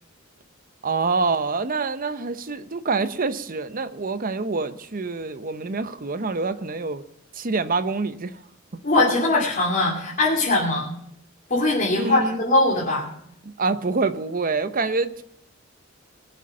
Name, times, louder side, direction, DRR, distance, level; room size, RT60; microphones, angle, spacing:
voice 1, 0.8-7.0 7.3-8.4 12.0-12.4 13.4-15.2, right 4 dB, 45° right, 11 dB, 0.8 m, -26 dB
voice 2, 8.8-10.9 11.5-13.1, left 2 dB, 40° left, -4 dB, 2.9 m, -21 dB
22.0 x 7.7 x 5.6 m, 0.72 s
head